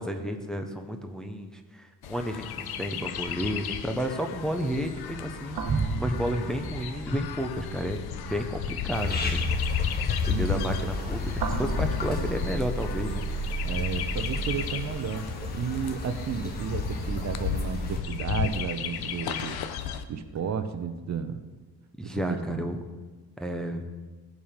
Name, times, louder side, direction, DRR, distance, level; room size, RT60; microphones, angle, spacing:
voice 1, 0.0-9.4 10.2-13.3 22.0-22.8 23.4-23.8, equal, ahead, 4 dB, 0.7 m, -32 dB
Chirp tweet, 2.0-20.0, left 8 dB, 70° left, 0.8 m, -34 dB
sound 1, 4.8-13.2 13.7-13.9 15.8-15.9, right 4 dB, 70° right, 1.5 m, -36 dB
sound 2, 8.9-18.0, left 1 dB, 25° left, 1.3 m, -32 dB
voice 2, 10.3-10.7 11.9-12.5 13.6-19.6 20.1-21.4 22.0-22.2 22.5-22.6, right 7 dB, 45° right, 9 dB, 0.7 m, -33 dB
17.0 x 7.3 x 5.1 m, 1.3 s
wide cardioid pair, 170°, 38 cm